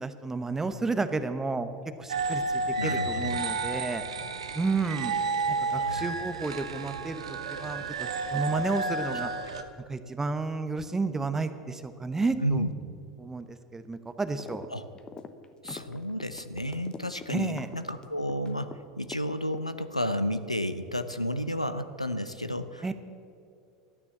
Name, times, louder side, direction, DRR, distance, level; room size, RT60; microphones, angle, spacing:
voice 1, 0.0-1.7 2.0-4.0 4.5-5.1 5.5-9.3 9.9-12.6 13.2-14.7 17.3-17.7 22.8-22.9, right 3 dB, 15° right, 10 dB, 0.9 m, -31 dB
sound 1, 2.1-9.6, right 3 dB, 70° right, 0.9 m, -31 dB
voice 2, 2.8-3.4 5.7-6.1 12.4-12.7 14.7-14.8 15.6-18.7 19.0-22.9, equal, 90° left, 10 dB, 0.6 m, -31 dB
sound 2, 14.4-14.7 14.9-18.8 19.1-20.0, left 5 dB, 25° left, 0.9 m, -43 dB
13.5 x 9.6 x 7.2 m, 2.5 s
figure-of-eight pair, 80°, 3 cm